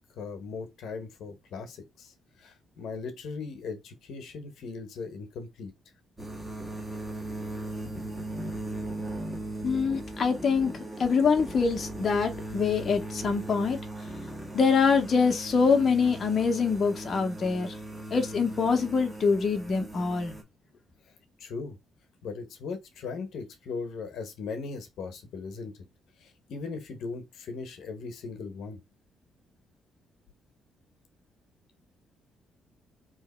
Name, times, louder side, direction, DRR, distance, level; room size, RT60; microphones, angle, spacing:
voice 1, 0.0-5.7 21.4-21.8 22.2-25.7 26.2-28.8, left 4 dB, 75° left, 1.0 m, -38 dB
sound 1, 6.2-20.4, right 1 dB, 15° right, 1.6 m, -38 dB
voice 2, 9.6-13.8 14.5-17.8 18.1-20.4, left 5 dB, 45° left, 0.8 m, -25 dB
3.2 x 2.9 x 4.2 m
cardioid pair, 90°, 0 cm